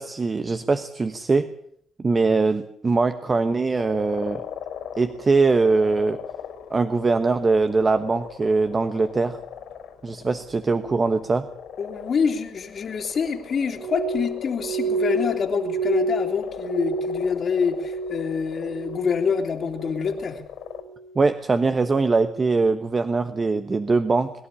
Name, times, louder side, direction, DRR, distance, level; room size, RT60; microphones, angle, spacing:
voice 1, 0.0-1.5 2.0-4.4 5.0-6.2 6.7-9.4 10.0-11.5 21.1-24.3, right 3 dB, 25° right, 10 dB, 1.1 m, -22 dB
sound 1, 3.8-20.8, left 8 dB, 75° left, 4.2 m, -40 dB
voice 2, 11.8-20.4, left 6 dB, 45° left, 0 dB, 2.9 m, -26 dB
Glass, 13.8-18.4 18.6-19.3 19.7-20.2 20.8-21.1, right 2 dB, 60° right, 4.4 m, -29 dB
23.0 x 12.0 x 10.0 m, 0.66 s
cardioid pair, 120°, 0 cm